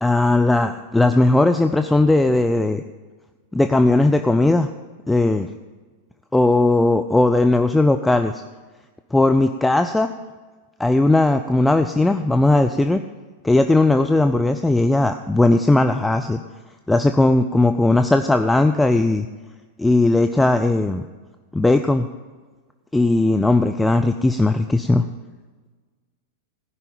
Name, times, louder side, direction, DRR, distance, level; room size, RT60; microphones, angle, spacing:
voice 1, 0.0-2.8 3.5-4.7 5.1-5.5 6.3-8.3 9.1-10.1 10.8-13.0 13.4-16.4 16.9-19.3 19.8-21.0 21.5-22.1 22.9-25.0, left 2 dB, 5° left, 7 dB, 0.5 m, -17 dB
15.5 x 5.6 x 8.8 m, 1.3 s
figure-of-eight pair, 95°, 0 cm